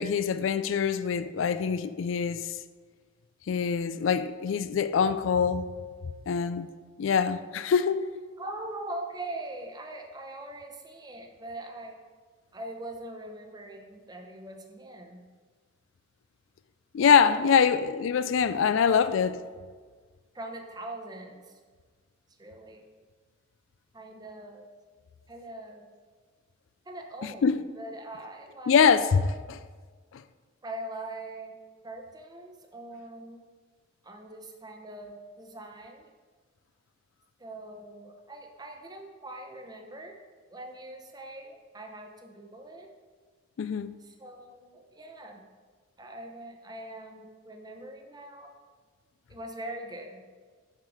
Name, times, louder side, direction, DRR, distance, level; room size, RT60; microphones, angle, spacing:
voice 1, 0.0-2.6 3.5-5.7 6.3-6.7 7.0-8.0 16.9-19.4 27.2-27.5 28.7-29.6 30.1-30.2 43.6-43.9, left 6 dB, 70° left, 0.4 m, -24 dB
voice 2, 8.4-12.0 12.5-15.2 17.2-17.7 18.7-18.9 20.3-21.6 22.4-22.8 23.9-24.7 25.3-25.9 26.9-28.8 30.6-31.6 31.8-33.4 34.0-36.0 37.4-40.2 40.5-42.9 44.0-45.5 46.0-48.5 49.3-50.2, right 1 dB, 20° right, 0.8 m, -42 dB
7.3 x 6.5 x 4.8 m
head